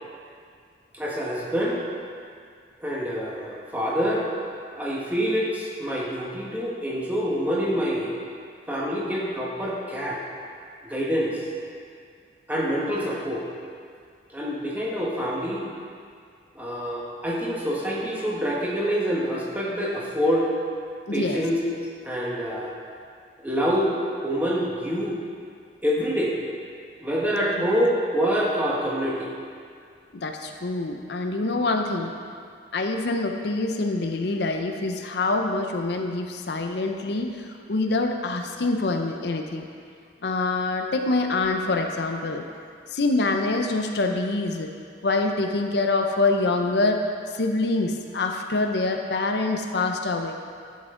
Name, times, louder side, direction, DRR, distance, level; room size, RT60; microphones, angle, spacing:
voice 1, 0.9-1.8 2.8-4.3 4.7-8.1 8.7-10.2 10.8-11.4 12.5-13.4 14.3-15.7 16.5-20.5 21.1-21.6 22.0-22.7 23.4-23.9 24.2-25.1 25.8-26.4 27.0-29.3, equal, 10° right, -5 dB, 1.3 m, -26 dB
voice 2, 21.1-21.4 30.1-32.1 32.7-39.7 40.2-42.4 42.9-44.7 45.0-47.0 47.3-50.3, left 2 dB, 65° left, 4 dB, 0.6 m, -25 dB
11.0 x 7.3 x 3.8 m, 2.2 s
head